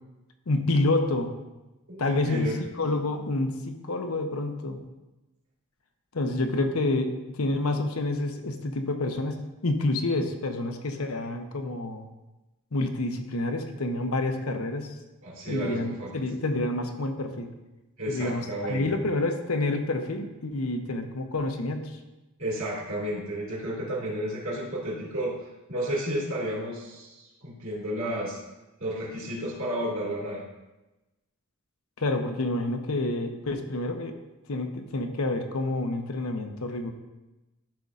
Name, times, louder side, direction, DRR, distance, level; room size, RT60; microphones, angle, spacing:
voice 1, 0.5-1.3 2.0-4.8 6.1-12.1 12.7-15.0 15.5-17.5 18.1-22.0 32.0-34.2 34.5-36.9, left 2 dB, 80° left, 5 dB, 0.8 m, -28 dB
voice 2, 1.9-2.6 15.2-16.1 18.0-19.0 22.4-25.4 25.7-28.4 28.8-30.4, right 1 dB, 65° right, -4 dB, 2.4 m, -32 dB
12.0 x 5.3 x 2.5 m, 1.0 s
head